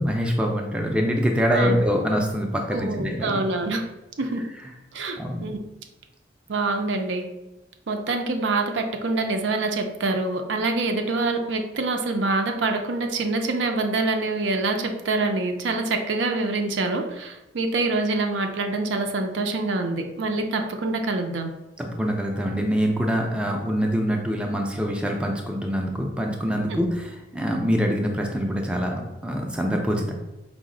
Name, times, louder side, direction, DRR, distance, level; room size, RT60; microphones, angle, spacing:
voice 1, 0.0-3.4 5.2-5.4 21.8-30.1, equal, 5° right, 1 dB, 0.4 m, -25 dB
voice 2, 1.5-1.8 2.7-3.8 4.2-4.4 4.9-5.6 6.5-7.3 7.9-21.5 26.7-26.8, right 3 dB, 90° right, 5 dB, 0.5 m, -25 dB
4.7 x 2.0 x 3.7 m, 0.98 s
head